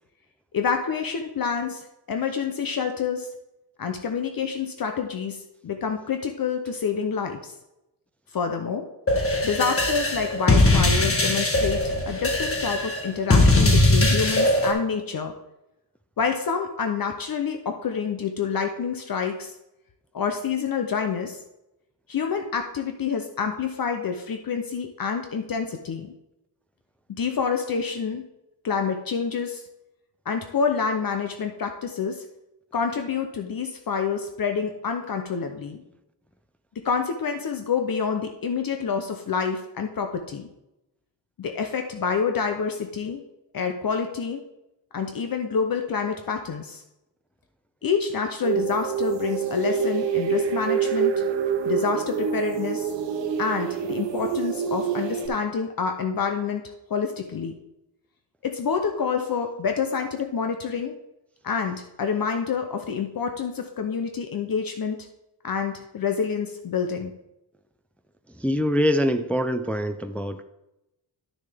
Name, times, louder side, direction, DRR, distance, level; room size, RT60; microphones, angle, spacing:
voice 1, 0.5-3.3 3.8-7.5 8.3-8.9 9.4-15.3 16.2-19.5 20.1-21.4 22.1-26.1 27.1-28.3 28.6-29.6 30.3-32.2 32.7-35.8 36.8-40.5 41.4-43.2 43.5-44.4 44.9-46.8 47.8-51.1 51.6-52.9 53.4-57.5 58.4-61.0 61.4-65.1 65.4-67.1, left 6 dB, 50° left, 5 dB, 0.7 m, -27 dB
sound 1, 9.1-14.7, left 2 dB, 30° left, 1.3 m, -20 dB
sound 2, 48.4-55.3, right 7 dB, 80° right, 1.0 m, -26 dB
voice 2, 68.4-70.4, equal, 5° left, 8 dB, 0.3 m, -24 dB
11.5 x 6.5 x 3.5 m, 0.92 s
wide cardioid pair, 135°, 43 cm